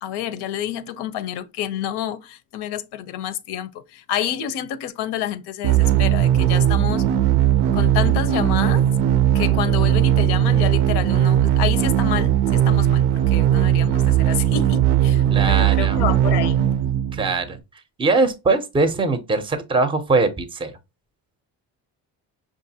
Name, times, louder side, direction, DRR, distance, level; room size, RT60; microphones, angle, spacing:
voice 1, 0.0-7.1 7.7-8.9 9.3-16.7, left 11 dB, 90° left, 0.6 m, -28 dB
sound 1, 5.6-17.6, right 11 dB, 90° right, 0.6 m, -18 dB
voice 2, 15.3-16.0 17.1-17.6 18.0-20.7, right 3 dB, 15° right, 0.5 m, -21 dB
5.7 x 2.5 x 2.7 m
cardioid pair, 140°, 39 cm